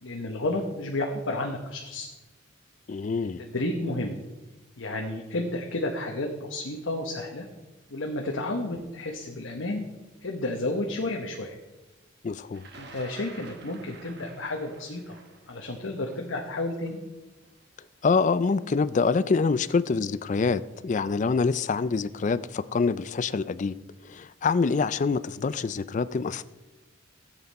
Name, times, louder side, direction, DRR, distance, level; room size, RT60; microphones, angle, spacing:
voice 1, 0.0-2.1 3.4-4.2 4.8-7.5 7.9-9.8 10.2-11.6 12.7-15.2 15.5-17.0, left 2 dB, 85° left, 1 dB, 1.1 m, -31 dB
voice 2, 2.9-3.4 12.2-12.7 18.0-23.7 24.1-26.4, left 4 dB, 40° left, 16 dB, 0.4 m, -25 dB
Thunder, 12.5-18.5 19.5-19.6 20.7-21.0 21.3-21.7, right 3 dB, 55° right, 1.2 m, -50 dB
14.0 x 8.1 x 4.2 m, 1.1 s
head